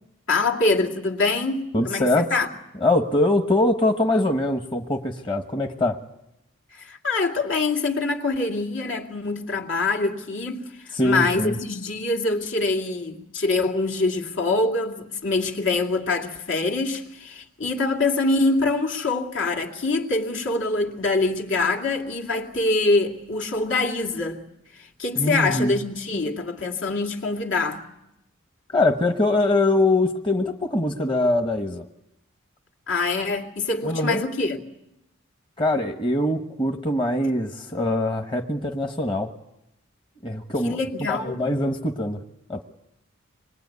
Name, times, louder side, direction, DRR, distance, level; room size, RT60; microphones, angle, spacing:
voice 1, 0.3-2.5 6.8-24.4 24.8-27.8 32.9-34.6 40.6-41.5, left 3 dB, 70° left, 2.6 m, -24 dB
voice 2, 1.7-2.3 2.8-6.0 10.9-11.6 25.2-25.8 28.7-31.8 33.8-34.2 35.6-39.3 40.2-42.2 42.5-42.6, left 2 dB, 25° left, 1.2 m, -23 dB
25.5 x 21.5 x 9.5 m
head